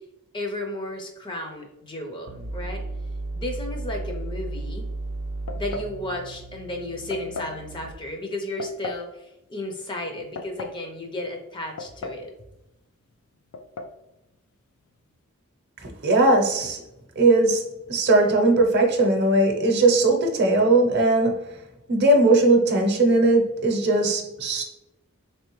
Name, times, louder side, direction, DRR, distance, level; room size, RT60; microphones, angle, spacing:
voice 1, 0.3-2.8 3.4-4.9 5.6-12.3, left 1 dB, 20° left, 3 dB, 0.5 m, -33 dB
sound 1, 2.3-8.2, right 2 dB, 90° right, 0.4 m, -34 dB
sound 2, 5.5-6.0 7.1-7.6 8.6-9.1 10.1-10.8 11.8-12.3 12.6-12.7 13.5-14.0, left 3 dB, 90° left, 0.4 m, -35 dB
voice 2, 16.0-16.8 17.2-17.6 17.9-21.4 21.9-24.6, right 2 dB, 50° right, 3 dB, 0.7 m, -19 dB
3.6 x 3.3 x 3.0 m, 0.89 s
head